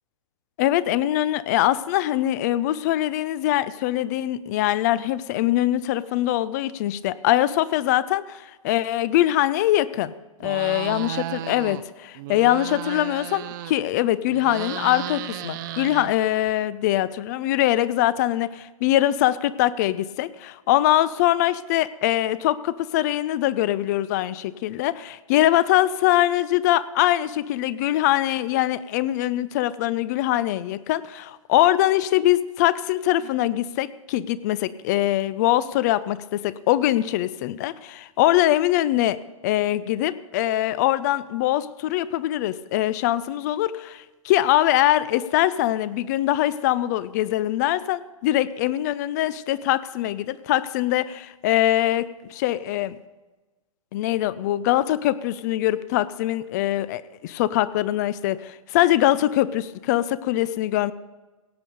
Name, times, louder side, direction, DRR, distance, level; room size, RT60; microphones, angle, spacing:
voice 1, 0.6-10.1 10.4-39.2 39.4-53.0 53.9-60.9, left 14 dB, 30° left, 17 dB, 0.5 m, -23 dB
sound 1, 10.4-11.8 12.1-14.0 14.3-16.5, right 12 dB, 35° right, 0.6 m, -34 dB
17.0 x 8.4 x 5.3 m, 1.2 s
figure-of-eight pair, 120°, 18 cm